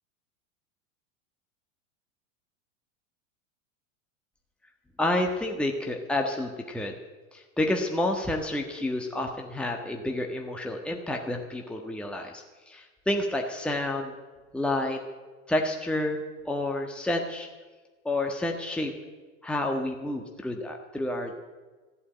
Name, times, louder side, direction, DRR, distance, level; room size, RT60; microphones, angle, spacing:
voice 1, 5.0-6.9 7.3-14.1 14.5-15.0 15.5-17.5 18.0-18.9 19.4-21.4, left 1 dB, 5° left, 2 dB, 1.4 m, -29 dB
14.5 x 8.6 x 9.1 m, 1.3 s
hypercardioid pair, 100°, 39 cm